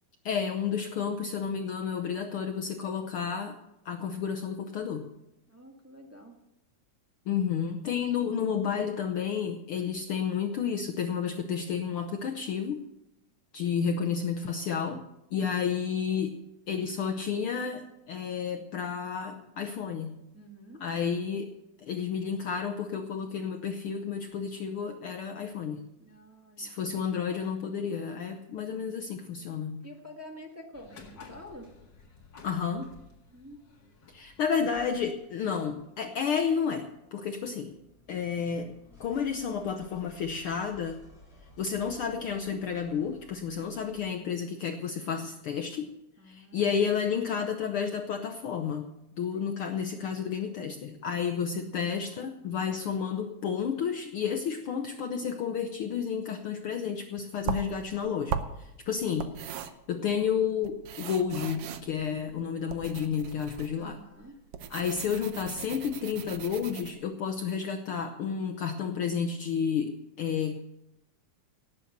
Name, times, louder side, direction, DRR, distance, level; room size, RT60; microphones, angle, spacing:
voice 1, 0.2-3.6 3.8-5.1 7.3-12.8 13.5-15.1 15.3-16.4 16.7-20.1 20.8-21.5 21.8-25.8 26.6-29.8 32.4-32.9 34.1-37.7 38.1-38.7 39.0-41.0 41.6-45.9 46.2-48.9 49.2-64.0 64.7-70.6, left 7 dB, 80° left, 5 dB, 1.2 m, -31 dB
voice 2, 5.5-6.3 20.3-20.8 26.0-26.7 29.8-31.7 33.3-33.6 46.2-46.9 49.3-49.8 63.8-64.4, equal, 15° right, 0 dB, 0.4 m, -49 dB
sound 1, 30.7-36.6, left 4 dB, 40° left, 2.3 m, -54 dB
sound 2, 36.3-44.2, left 1 dB, 10° left, 3.1 m, -57 dB
sound 3, 57.4-66.9, right 8 dB, 70° right, 1.4 m, -39 dB
17.5 x 8.1 x 6.6 m, 0.88 s
omnidirectional pair, 3.5 m